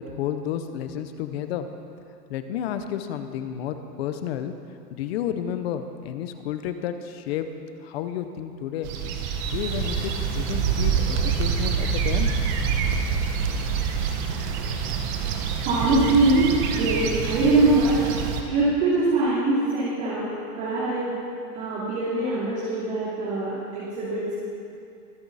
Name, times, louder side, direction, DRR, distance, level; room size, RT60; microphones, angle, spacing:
voice 1, 0.0-1.7 2.3-4.5 4.9-7.5 7.8-8.9 9.5-12.4, left 9 dB, 40° left, 9 dB, 0.8 m, -31 dB
sound 1, 8.8-18.4, right 6 dB, 30° right, 0.9 m, -26 dB
voice 2, 15.6-18.0 18.5-21.1 21.5-24.3, right 2 dB, 45° right, -9 dB, 2.9 m, -23 dB
23.5 x 8.0 x 4.1 m, 2.6 s
supercardioid pair, 160°, 48 cm